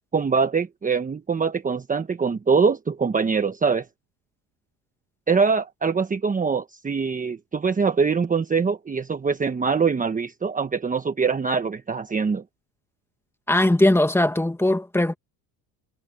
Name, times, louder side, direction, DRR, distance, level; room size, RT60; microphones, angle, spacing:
voice 1, 0.1-3.9 5.3-12.4, right 5 dB, 20° right, 1.2 m, -23 dB
voice 2, 13.5-15.2, left 1 dB, 5° left, 1.9 m, -19 dB
cardioid pair, 115°, 42 cm